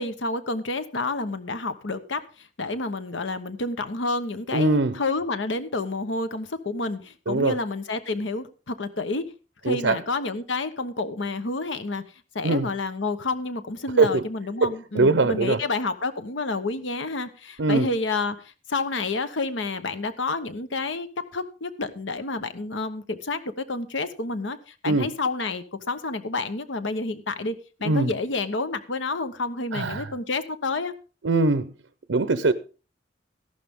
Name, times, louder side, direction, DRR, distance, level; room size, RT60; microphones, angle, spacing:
voice 1, 0.0-9.2 9.6-12.0 12.3-30.9, left 3 dB, 80° left, 11 dB, 1.1 m, -29 dB
voice 2, 4.5-5.0 7.3-7.6 9.6-10.0 12.4-12.7 14.0-14.2 14.6-15.6 17.6-17.9 24.9-25.1 27.8-28.1 29.7-30.1 31.2-31.7 32.1-32.5, right 3 dB, 85° right, 13 dB, 0.7 m, -22 dB
14.5 x 11.5 x 3.6 m, 0.35 s
head